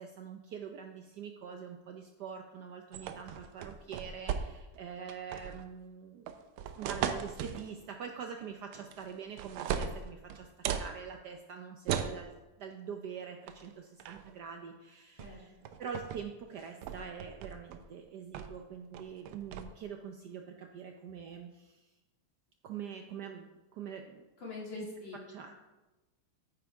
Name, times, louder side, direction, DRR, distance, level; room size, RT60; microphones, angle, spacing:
voice 1, 0.0-6.3 6.7-10.5 10.7-12.3 12.6-15.5 15.8-21.9 22.6-24.3 24.7-24.9 25.3-25.5, right 7 dB, 70° right, 4 dB, 1.0 m, -44 dB
sound 1, 2.9-4.8 5.1-5.6 6.3-7.7 8.7-9.1 9.4-10.9 11.9-12.2 13.5-13.7 14.0-14.3 15.2-15.3 15.7-16.2 16.6-17.8 18.3-18.6 18.9-19.6, right 8 dB, 85° right, 1.5 m, -37 dB
voice 2, 15.2-15.7 24.4-25.2, left 4 dB, 60° left, -4 dB, 3.3 m, -44 dB
9.4 x 8.9 x 3.4 m, 1.1 s
omnidirectional pair, 2.3 m